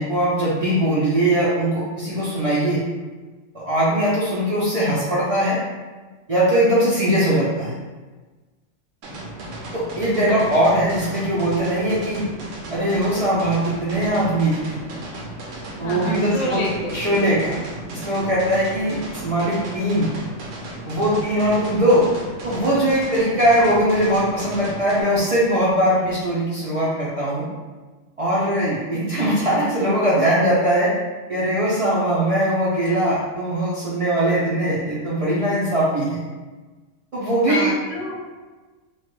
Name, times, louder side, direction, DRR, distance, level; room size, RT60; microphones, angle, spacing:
voice 1, 0.0-2.8 3.5-5.6 6.3-7.7 9.7-12.2 12.7-14.8 15.8-16.6 16.9-17.6 17.9-20.1 20.8-22.1 22.4-27.4 28.2-30.9 31.3-36.2 37.1-37.7, right 1 dB, 55° right, -8 dB, 0.3 m, -20 dB
sound 1, 9.0-25.0, right 1 dB, 75° right, 0.9 m, -35 dB
voice 2, 15.8-17.0 37.5-38.2, left 2 dB, 70° left, 0 dB, 0.9 m, -29 dB
3.0 x 2.2 x 3.0 m, 1.3 s
omnidirectional pair, 1.4 m